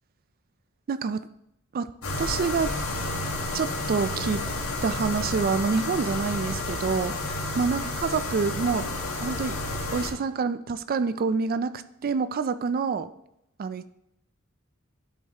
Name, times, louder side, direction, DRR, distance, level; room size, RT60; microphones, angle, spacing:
voice 1, 0.9-1.2 1.7-1.9 2.2-2.7 3.5-4.4 4.8-8.9 9.2-9.6 9.9-13.1 13.6-13.9, right 5 dB, 45° right, 13 dB, 0.3 m, -27 dB
sound 1, 2.0-10.1, left 2 dB, 85° left, 1.6 m, -31 dB
10.5 x 5.6 x 2.8 m, 0.78 s
head